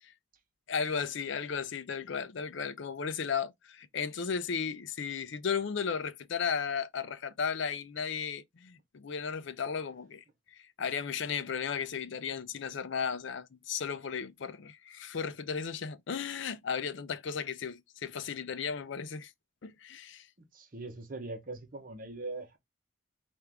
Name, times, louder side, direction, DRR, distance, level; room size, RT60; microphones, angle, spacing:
voice 1, 0.7-19.3 19.6-20.3, left 6 dB, 65° left, 0.5 m, -35 dB
voice 2, 20.5-22.6, right 2 dB, 45° right, 0.9 m, -41 dB
4.5 x 2.6 x 3.5 m
head